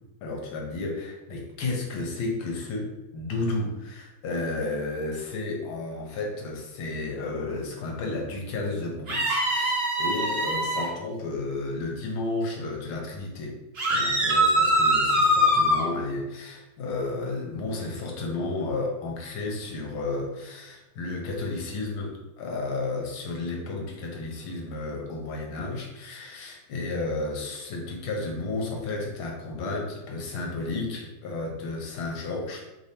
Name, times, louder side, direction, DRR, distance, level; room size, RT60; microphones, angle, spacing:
voice 1, 0.2-13.6 13.9-32.6, left 2 dB, 70° left, 0 dB, 1.7 m, -32 dB
sound 1, 9.1-10.9 13.8-15.8, equal, 50° right, 0.7 m, -23 dB
4.9 x 3.7 x 2.8 m, 1.0 s
omnidirectional pair, 2.4 m